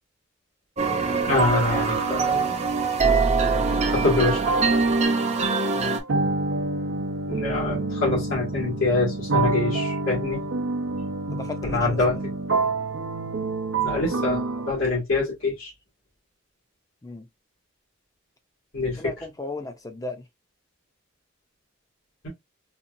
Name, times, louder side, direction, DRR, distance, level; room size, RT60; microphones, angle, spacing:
sound 1, 0.8-6.0, right 4 dB, 35° right, 0.6 m, -23 dB
voice 1, 1.3-2.5 3.9-4.4 7.3-10.4 11.7-12.2 13.7-15.7 18.7-19.0, left 3 dB, 85° left, 1.9 m, -25 dB
sound 2, 3.6-3.8 4.4-14.7, right 3 dB, 75° right, 0.6 m, -28 dB
voice 2, 11.3-12.0 17.0-17.3 19.0-20.2, left 2 dB, 15° left, 0.5 m, -35 dB
4.1 x 2.4 x 2.5 m
head